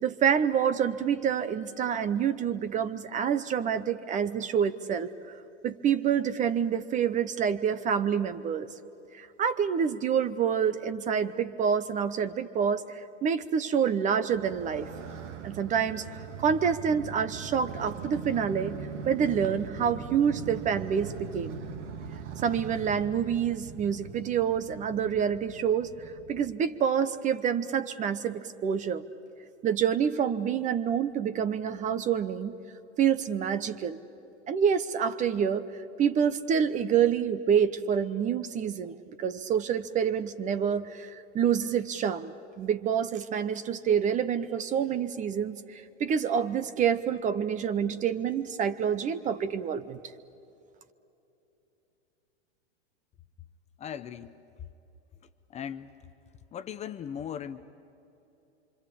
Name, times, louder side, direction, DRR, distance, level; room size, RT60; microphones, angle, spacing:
voice 1, 0.0-5.3 5.6-8.7 9.1-14.9 15.4-18.8 19.1-21.6 22.4-25.9 26.3-29.0 29.6-32.5 33.0-34.0 34.5-50.0, right 7 dB, 20° right, 14 dB, 0.7 m, -27 dB
Motorcycle, 14.3-26.5, right 6 dB, 80° right, 2.1 m, -41 dB
voice 2, 53.8-54.3 55.2-56.0 56.5-57.8, left 8 dB, 20° left, 10 dB, 0.7 m, -39 dB
26.0 x 25.0 x 8.6 m, 2.9 s
hypercardioid pair, 135°, 35 cm